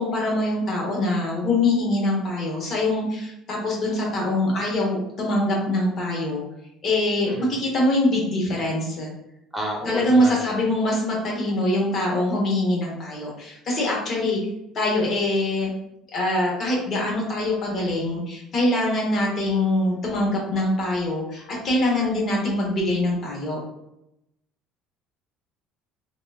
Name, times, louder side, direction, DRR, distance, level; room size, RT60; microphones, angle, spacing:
voice 1, 0.0-6.4 6.8-9.1 9.8-14.4 14.7-15.7 16.1-23.6, left 1 dB, 50° left, -2 dB, 1.0 m, -23 dB
voice 2, 9.5-10.4, right 1 dB, 5° right, -3 dB, 1.0 m, -31 dB
3.6 x 2.3 x 2.4 m, 0.84 s
supercardioid pair, 80°, 0 cm